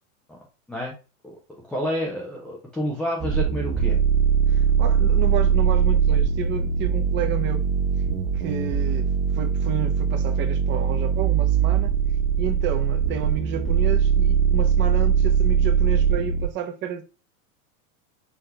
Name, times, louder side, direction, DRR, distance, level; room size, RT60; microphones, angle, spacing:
voice 1, 1.7-4.0, equal, ahead, 0.3 m, -29 dB
sound 1, 3.2-16.5, right 7 dB, 45° right, 1.3 m, -21 dB
voice 2, 4.5-7.7 8.3-11.9 12.4-17.0, right 9 dB, 30° right, 0.6 m, -31 dB
5.8 x 2.8 x 3.2 m
supercardioid pair, 140°, 41 cm